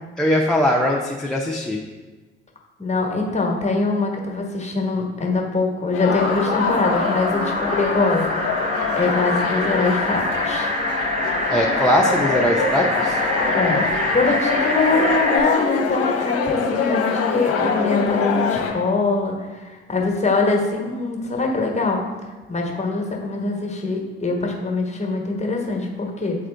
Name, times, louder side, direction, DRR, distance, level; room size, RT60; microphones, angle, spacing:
voice 1, 0.2-1.8 11.5-13.2, equal, ahead, -1 dB, 0.7 m, -20 dB
voice 2, 2.8-8.3 8.9-10.7 13.5-13.9 14.1-22.0 22.5-26.3, left 3 dB, 20° left, 0 dB, 1.4 m, -23 dB
sound 1, 5.9-18.7, left 5 dB, 45° left, 1.0 m, -24 dB
sound 2, 6.1-15.4, equal, 20° right, 1.3 m, -25 dB
8.6 x 3.7 x 3.4 m, 1.3 s
hypercardioid pair, 55°, 32 cm